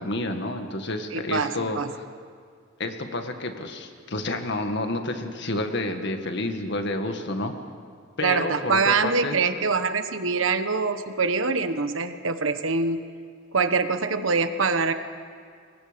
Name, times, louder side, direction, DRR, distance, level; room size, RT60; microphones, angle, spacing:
voice 1, 0.0-2.0 2.8-7.5 8.2-9.4, left 2 dB, 60° left, 6 dB, 1.9 m, -29 dB
voice 2, 1.1-1.9 8.2-13.0 13.5-14.9, right 4 dB, 80° right, 9 dB, 1.3 m, -24 dB
29.5 x 22.5 x 5.3 m, 2.1 s
head